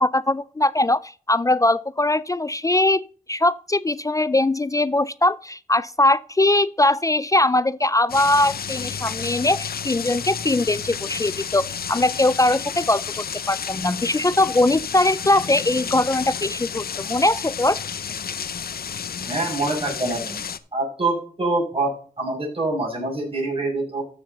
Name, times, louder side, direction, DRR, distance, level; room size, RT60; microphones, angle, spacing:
voice 1, 0.0-17.8, left 2 dB, 20° left, 0.4 m, -21 dB
sound 1, 8.1-20.6, left 7 dB, 80° left, 0.7 m, -31 dB
voice 2, 19.2-20.5 20.7-24.0, right 2 dB, 35° right, 6.1 m, -25 dB
13.5 x 6.6 x 3.8 m
wide cardioid pair, 95°, 16 cm